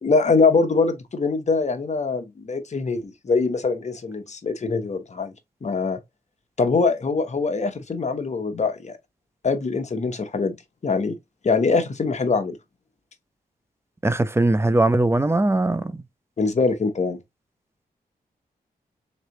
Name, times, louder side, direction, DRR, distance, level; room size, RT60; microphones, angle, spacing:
voice 1, 0.0-5.3 5.6-6.0 6.6-9.0 9.4-10.6 10.8-11.2 11.4-12.5 16.4-17.2, left 4 dB, 45° left, 1.0 m, -23 dB
voice 2, 14.0-16.0, right 2 dB, 15° right, 0.5 m, -20 dB
3.7 x 3.2 x 2.9 m
cardioid pair, 70°, 16 cm